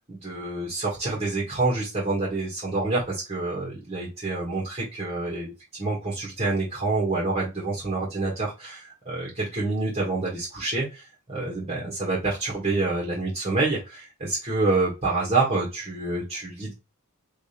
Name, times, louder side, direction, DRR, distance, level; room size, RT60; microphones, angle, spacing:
voice 1, 0.1-16.7, right 3 dB, 30° right, -4 dB, 1.6 m, -27 dB
3.4 x 3.1 x 4.3 m, 0.27 s
head